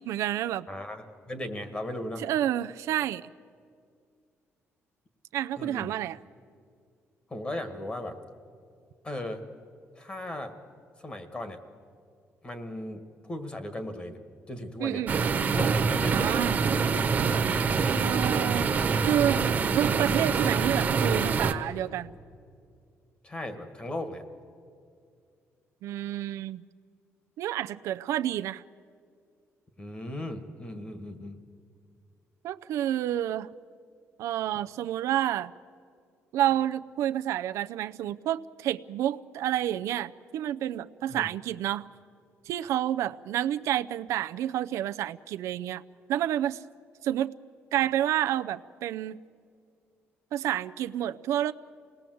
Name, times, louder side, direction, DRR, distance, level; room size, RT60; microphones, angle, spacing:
voice 1, 0.0-0.7 2.2-3.3 5.3-6.2 14.8-15.1 16.0-16.6 18.0-19.4 19.7-22.1 25.8-26.6 27.4-28.6 32.4-33.5 34.2-35.5 36.3-41.9 42.5-45.8 46.1-46.6 47.0-47.3 47.7-49.2 50.3-51.5, right 12 dB, 90° right, 10 dB, 0.5 m, -29 dB
voice 2, 0.7-2.3 5.6-5.9 7.3-8.2 9.0-9.4 9.9-10.5 11.0-11.6 12.4-14.2 14.5-15.1 15.5-16.5 23.2-24.2 29.8-31.5 41.1-41.3, left 1 dB, 20° left, 9 dB, 1.7 m, -37 dB
sound 1, 15.1-21.5, right 5 dB, 35° right, 1.2 m, -25 dB
27.5 x 19.5 x 7.8 m, 2.3 s
cardioid pair, 155°, 5 cm